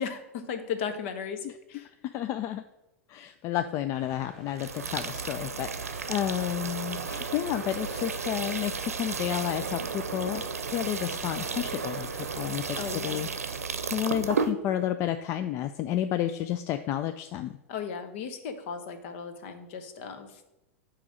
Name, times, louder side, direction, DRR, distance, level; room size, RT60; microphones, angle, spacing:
voice 1, 0.0-1.9 12.7-13.3 17.7-20.4, left 6 dB, 55° left, 8 dB, 1.0 m, -36 dB
voice 2, 2.0-2.6 3.1-10.5 10.7-12.8 13.0-13.3 13.9-17.6, left 11 dB, 40° left, 9 dB, 0.4 m, -31 dB
sound 1, 3.9-13.0, equal, 5° left, 2.5 m, -48 dB
sound 2, 4.6-14.5, right 5 dB, 90° right, 0.6 m, -33 dB
8.4 x 3.0 x 6.3 m, 0.92 s
hypercardioid pair, 100°, 8 cm